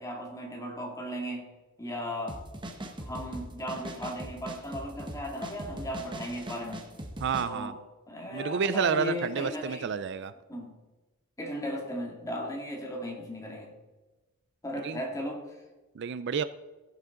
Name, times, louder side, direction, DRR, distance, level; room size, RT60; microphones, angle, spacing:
voice 1, 0.0-1.5 1.8-2.4 3.0-6.8 7.4-7.8 8.1-9.9 10.5-10.7 11.4-13.7 14.6-15.5, left 1 dB, 15° left, 0 dB, 2.0 m, -36 dB
sound 1, 2.3-7.4, right 1 dB, 20° right, 1.1 m, -40 dB
voice 2, 7.2-7.8 8.3-10.3 14.8-15.0 16.0-16.4, right 6 dB, 55° right, 14 dB, 0.4 m, -30 dB
15.0 x 8.2 x 3.8 m, 1.1 s
head